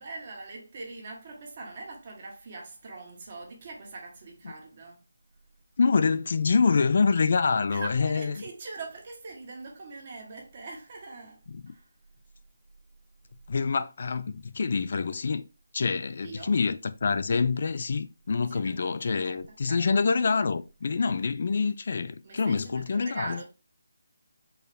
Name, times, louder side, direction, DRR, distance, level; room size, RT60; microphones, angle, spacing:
voice 1, 0.0-5.0 7.7-11.4 11.7-11.9 16.2-16.5 18.5-18.8 19.0-20.0 22.2-23.4, right 3 dB, 40° right, 1.5 m, -42 dB
voice 2, 5.8-8.3 11.5-11.6 13.5-15.4 15.7-23.4, left 5 dB, 50° left, 0.3 m, -26 dB
4.5 x 3.3 x 3.4 m
figure-of-eight pair, 165°, 0 cm